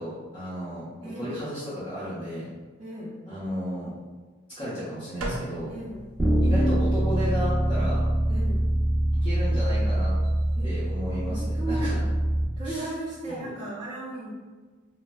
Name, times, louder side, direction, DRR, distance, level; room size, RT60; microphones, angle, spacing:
voice 1, 0.0-0.9 1.2-2.5 3.3-3.9 4.6-5.7 6.4-8.0 9.2-10.1 10.6-12.0 12.6-12.9 13.3-13.4, equal, 25° left, -12 dB, 0.8 m, -33 dB
voice 2, 1.0-1.4 2.8-3.2 5.7-6.0 8.3-8.6 10.5-10.8 11.2-12.0 12.6-14.3, right 1 dB, 25° right, -9 dB, 0.5 m, -35 dB
sound 1, 5.2-11.4, right 1 dB, 85° right, 0.6 m, -42 dB
Bass guitar, 6.2-12.4, right 1 dB, 5° left, 1.0 m, -24 dB
4.1 x 2.1 x 2.2 m, 1.4 s
head